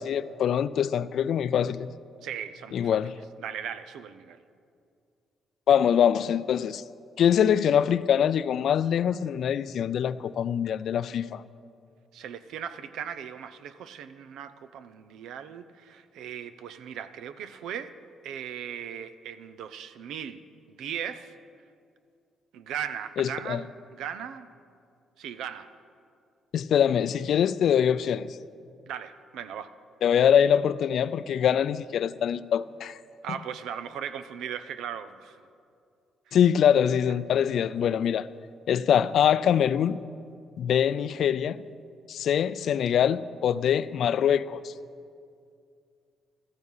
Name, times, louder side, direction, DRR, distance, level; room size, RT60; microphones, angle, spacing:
voice 1, 0.0-1.9 2.7-3.2 5.7-6.8 7.2-11.4 23.2-23.6 26.5-28.3 30.0-33.0 36.3-38.3 38.7-40.0 40.6-41.6 42.1-44.7, left 9 dB, 70° left, 0.4 m, -24 dB
voice 2, 2.2-3.0 3.4-4.4 12.1-18.0 18.2-20.4 20.8-21.3 22.5-23.7 23.9-24.5 25.2-25.7 28.9-29.7 33.2-35.4 36.3-36.4, right 8 dB, 85° right, 0.7 m, -38 dB
14.0 x 14.0 x 5.6 m
cardioid pair, 90°, 0 cm